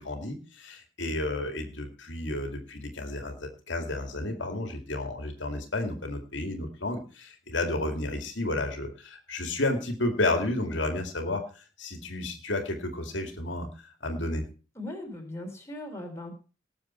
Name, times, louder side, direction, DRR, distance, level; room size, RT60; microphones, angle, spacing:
voice 1, 0.0-11.4 11.8-13.7 14.0-14.4, left 2 dB, 70° left, 5 dB, 2.3 m, -31 dB
voice 2, 14.8-16.3, left 1 dB, 15° left, 1 dB, 3.5 m, -38 dB
19.0 x 7.2 x 4.4 m, 0.36 s
head